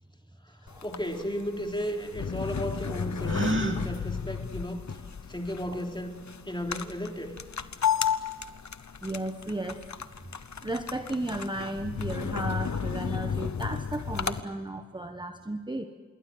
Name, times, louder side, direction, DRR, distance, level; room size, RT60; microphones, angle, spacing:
voice 1, 0.5-4.8 5.3-6.2 6.5-7.3, equal, 15° left, 2 dB, 3.6 m, -34 dB
sound 1, 0.7-14.4, left 7 dB, 70° left, 1.0 m, -33 dB
Gasp, 3.2-3.8, right 2 dB, 40° right, 2.7 m, -28 dB
voice 2, 9.0-9.8 10.6-15.9, right 1 dB, 15° right, 6 dB, 1.3 m, -34 dB
27.0 x 21.5 x 8.0 m, 1.5 s
wide cardioid pair, 85°, 29 cm